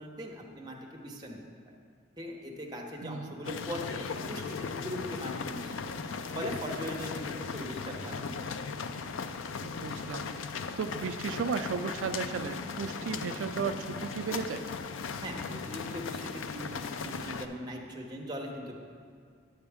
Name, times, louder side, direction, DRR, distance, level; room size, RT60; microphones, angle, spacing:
voice 1, 0.0-1.4 2.2-5.9 6.3-8.2 15.2-18.8, equal, 20° right, -1 dB, 0.9 m, -40 dB
voice 2, 3.0-3.3 9.6-10.3 10.8-14.7, right 5 dB, 80° right, 8 dB, 0.4 m, -34 dB
sound 1, 3.4-17.5, left 5 dB, 85° left, 0.4 m, -37 dB
9.7 x 7.9 x 3.5 m, 2.1 s
head